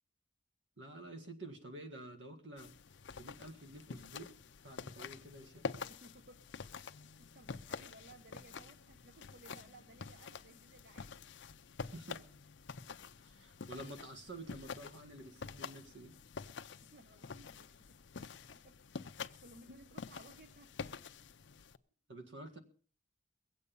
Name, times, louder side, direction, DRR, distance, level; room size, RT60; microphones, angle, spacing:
voice 1, 0.8-2.7 3.2-4.3 4.6-5.7 11.9-12.2 13.2-16.1 22.1-22.6, right 1 dB, 70° right, 6 dB, 1.9 m, -50 dB
sound 1, 2.6-21.8, left 5 dB, 70° left, 0.6 m, -48 dB
voice 2, 5.9-6.4 6.7-11.2 16.5-18.8 19.1-20.7, right 2 dB, 50° right, 7 dB, 0.9 m, -60 dB
21.5 x 8.3 x 5.4 m, 0.43 s
head